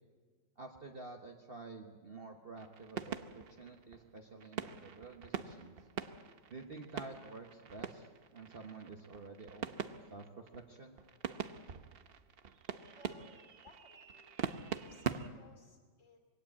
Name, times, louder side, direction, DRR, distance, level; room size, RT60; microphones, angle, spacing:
voice 1, 0.6-5.9 6.5-11.0, right 3 dB, 40° right, 3 dB, 1.1 m, -50 dB
sound 1, 2.6-15.3, right 7 dB, 55° right, 0.6 m, -43 dB
voice 2, 12.9-14.4 14.7-16.2, left 3 dB, 45° left, 5 dB, 2.9 m, -61 dB
21.0 x 17.0 x 8.6 m, 1.5 s
omnidirectional pair, 1.9 m